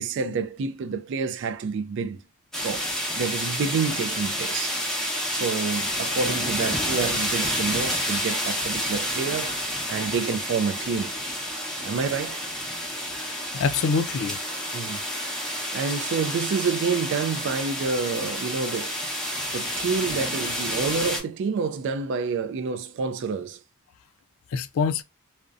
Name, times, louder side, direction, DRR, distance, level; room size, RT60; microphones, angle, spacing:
voice 1, 0.0-2.2 2.6-4.8 5.3-11.2 11.8-12.5 14.7-15.0 15.7-18.9 19.5-23.6, right 5 dB, 60° right, 0.3 m, -28 dB
sound 1, 2.5-21.2, equal, ahead, 0.7 m, -29 dB
voice 2, 13.2-14.4 24.5-25.0, left 5 dB, 75° left, 0.3 m, -25 dB
2.5 x 2.1 x 2.3 m
head